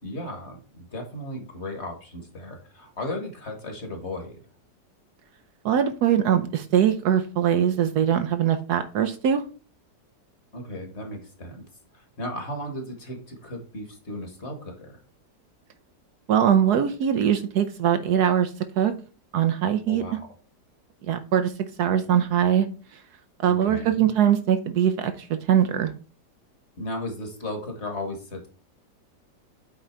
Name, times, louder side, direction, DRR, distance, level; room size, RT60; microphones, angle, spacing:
voice 1, 0.0-4.4 10.5-11.6 11.9-15.0 19.9-20.3 23.4-24.1 26.8-28.5, left 1 dB, 40° left, 3 dB, 1.7 m, -35 dB
voice 2, 5.6-9.4 16.3-18.5 18.8-18.9 19.3-20.0 21.1-21.5 21.8-22.7 23.4-25.9, right 9 dB, 70° right, 9 dB, 1.1 m, -22 dB
8.2 x 3.8 x 4.4 m, 0.37 s
omnidirectional pair, 1.9 m